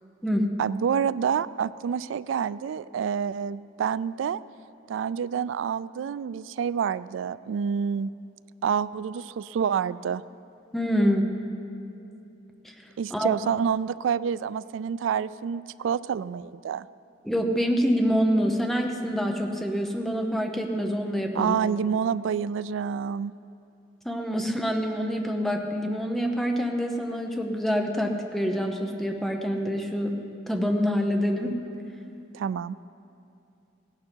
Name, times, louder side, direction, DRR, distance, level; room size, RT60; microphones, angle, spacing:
voice 1, 0.6-4.4 4.9-8.1 8.6-10.2 13.0-16.9 21.4-23.3 32.3-32.8, right 7 dB, 80° right, 17 dB, 0.3 m, -28 dB
voice 2, 10.7-11.3 12.6-12.7 13.1-13.4 17.2-21.6 24.0-30.2 30.5-31.6, equal, ahead, 2 dB, 0.9 m, -26 dB
16.5 x 11.5 x 4.6 m, 2.7 s
head